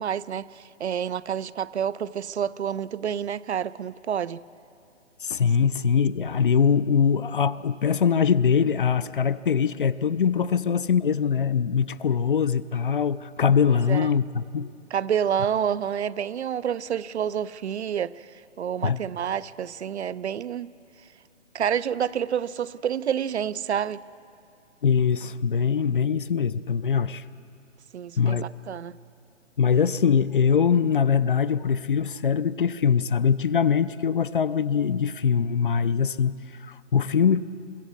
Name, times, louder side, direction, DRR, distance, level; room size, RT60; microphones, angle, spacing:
voice 1, 0.0-4.4 13.9-14.1 14.9-18.3 18.6-20.7 21.5-24.0 27.9-28.9, right 8 dB, 65° right, 0.5 m, -28 dB
voice 2, 5.2-14.7 18.8-19.0 24.8-27.2 28.2-28.5 29.6-37.4, left 7 dB, 45° left, 0.5 m, -22 dB
23.5 x 15.0 x 8.1 m
hypercardioid pair, 155°, 37 cm